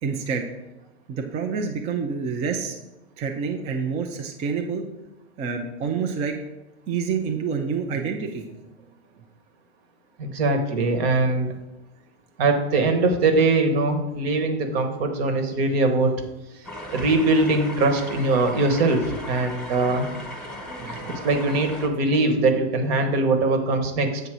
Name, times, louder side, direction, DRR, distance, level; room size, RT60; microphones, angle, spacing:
voice 1, 0.0-0.5 1.1-2.8 3.2-4.9 5.4-6.4 6.9-8.7 19.3-20.1 20.7-21.2, right 5 dB, 20° right, 4 dB, 0.3 m, -28 dB
voice 2, 10.2-11.5 12.4-16.1 16.9-20.1 21.1-24.2, right 2 dB, 60° right, 6 dB, 1.2 m, -22 dB
sound 1, 16.6-21.9, left 1 dB, ahead, 1.2 m, -36 dB
7.8 x 2.7 x 6.0 m, 1.0 s
hypercardioid pair, 130°, 35 cm